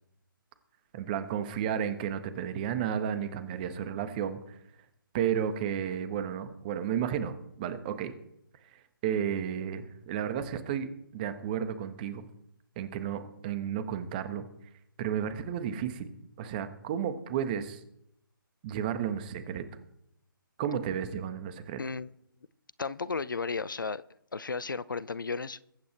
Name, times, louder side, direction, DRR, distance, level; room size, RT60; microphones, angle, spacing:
voice 1, 0.9-4.6 5.1-8.1 9.0-12.2 12.8-14.4 15.0-17.8 18.6-19.6 20.6-21.8, right 8 dB, 25° right, 1.4 m, -32 dB
voice 2, 21.8-22.1 22.8-24.0 24.3-25.6, left 4 dB, 65° left, 0.7 m, -34 dB
22.0 x 8.6 x 4.5 m
figure-of-eight pair, 145°, 12 cm